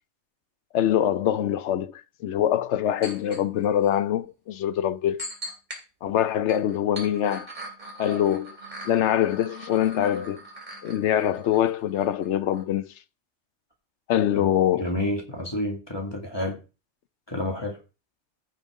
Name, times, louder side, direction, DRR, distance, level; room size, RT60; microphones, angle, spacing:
voice 1, 0.7-5.2 6.0-7.5 8.0-8.5 8.8-10.4 10.8-12.9 14.1-14.9, left 11 dB, 85° left, 1.0 m, -24 dB
sound 1, 3.0-3.4 3.8-3.9 5.2-5.8 6.3-12.3 12.5-12.6, right 1 dB, 40° right, 3.1 m, -41 dB
voice 2, 14.8-16.6 17.3-17.8, left 1 dB, 20° left, 2.0 m, -29 dB
15.0 x 5.3 x 3.7 m
omnidirectional pair, 1.2 m